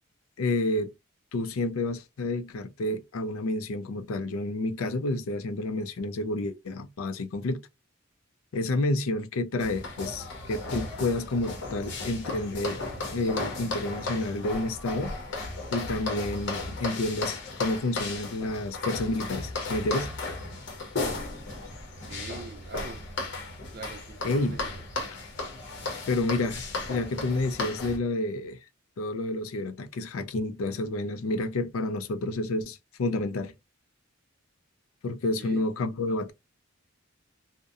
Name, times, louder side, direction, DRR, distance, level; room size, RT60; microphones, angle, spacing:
voice 1, 0.4-0.9 1.3-7.6 8.5-12.8 13.1-15.1 15.7-20.1 24.2-24.6 26.1-26.6 26.9-28.6 29.0-33.5 35.0-36.3, left 2 dB, 75° left, 0.4 m, -29 dB
sound 1, 9.6-28.0, left 3 dB, 55° left, 0.8 m, -35 dB
voice 2, 22.1-23.0 23.7-24.4 25.0-25.1 35.4-35.6, right 4 dB, 45° right, 0.4 m, -43 dB
2.6 x 2.1 x 2.3 m
head